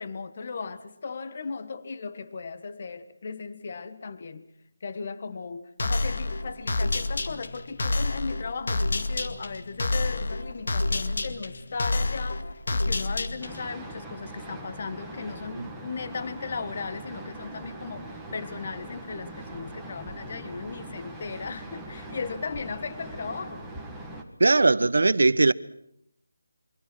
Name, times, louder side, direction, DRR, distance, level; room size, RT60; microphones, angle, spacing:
voice 1, 0.0-4.5 4.8-23.6, left 4 dB, 35° left, 1.4 m, -36 dB
sound 1, 5.8-13.7, left 2 dB, 60° left, 2.1 m, -29 dB
sound 2, 13.4-24.2, right 1 dB, ahead, 1.6 m, -41 dB
voice 2, 24.4-25.5, right 3 dB, 70° right, 0.9 m, -20 dB
27.5 x 24.0 x 6.2 m
figure-of-eight pair, 175°, 0 cm